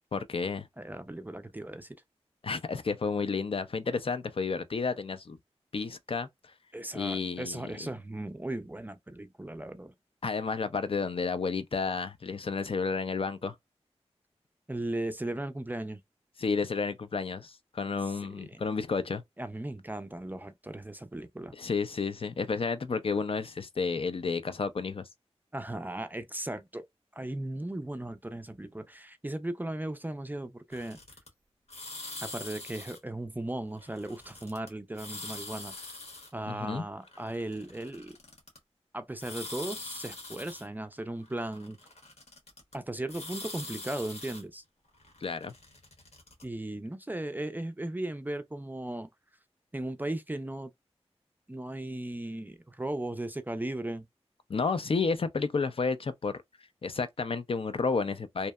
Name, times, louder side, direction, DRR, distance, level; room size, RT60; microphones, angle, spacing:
voice 1, 0.1-0.7 2.4-5.4 5.7-6.5 6.9-7.9 10.2-13.6 16.4-19.2 21.5-25.1 36.5-36.8 45.2-45.5 54.5-56.3 56.8-58.5, left 4 dB, 55° left, 0.4 m, -31 dB
voice 2, 0.8-2.0 6.7-9.9 14.7-16.0 18.1-18.6 19.4-21.5 25.5-26.9 27.1-31.0 32.2-35.8 36.3-38.1 38.9-41.8 42.7-44.6 46.4-49.1 49.7-50.7 51.5-54.1, right 1 dB, 15° right, 0.4 m, -37 dB
sound 1, 30.7-31.3 31.7-33.0 33.8-34.7 34.9-36.3 37.0-38.6 39.2-40.7 41.2-42.7 43.1-44.4 45.0-46.4, left 2 dB, 70° left, 1.0 m, -43 dB
2.7 x 2.0 x 2.2 m
wide cardioid pair, 60°, 11 cm